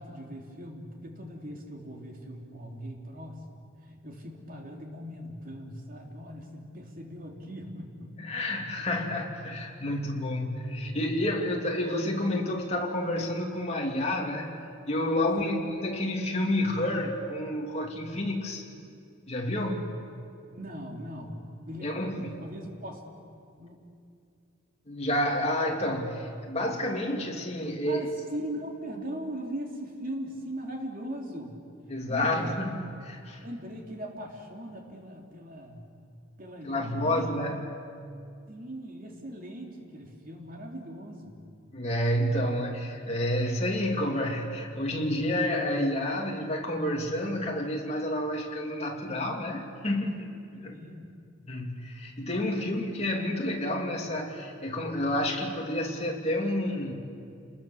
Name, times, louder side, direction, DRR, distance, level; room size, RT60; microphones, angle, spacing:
voice 1, 0.0-3.6 3.9-8.2 8.8-9.1 9.9-10.0 11.5-11.6 15.3-15.6 20.5-23.0 23.6-23.8 27.8-31.6 32.1-32.5 33.4-35.9 36.4-37.3 38.5-41.4 50.5-51.1 52.3-53.1, equal, 45° right, 1 dB, 3.1 m, -40 dB
voice 2, 8.2-18.6 19.3-19.9 21.8-22.4 24.9-28.0 31.9-33.4 36.6-37.6 41.7-50.3 50.6-50.8 51.5-56.9, left 1 dB, 35° left, 0 dB, 2.8 m, -29 dB
29.0 x 20.5 x 7.1 m, 2.4 s
head